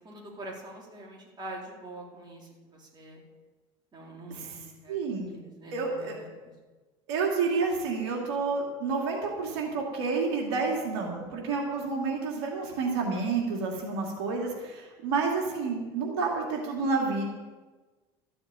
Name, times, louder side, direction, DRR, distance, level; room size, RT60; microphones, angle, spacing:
voice 1, 0.0-3.2 3.9-5.0 5.3-6.1, right 1 dB, 30° right, -2 dB, 4.4 m, -44 dB
voice 2, 4.9-5.3 5.7-6.2 7.1-17.3, right 4 dB, 85° right, 0 dB, 2.5 m, -29 dB
14.0 x 7.0 x 8.9 m, 1.3 s
supercardioid pair, 90°, 14 cm